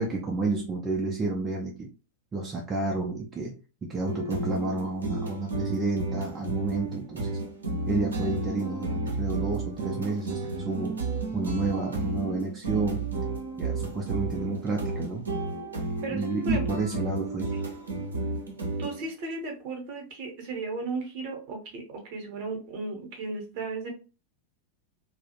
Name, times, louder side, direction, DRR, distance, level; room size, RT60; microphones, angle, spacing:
voice 1, 0.0-1.9 2.3-7.4 7.9-11.0 11.3-13.0 13.6-15.3 16.1-17.5, right 3 dB, 20° right, -1 dB, 0.4 m, -30 dB
sound 1, 4.0-19.1, right 3 dB, 75° right, 0.5 m, -32 dB
voice 2, 16.0-16.6 18.8-23.9, right 3 dB, 45° right, 2 dB, 0.8 m, -35 dB
2.3 x 2.0 x 2.8 m, 0.33 s
figure-of-eight pair, 90°, 0 cm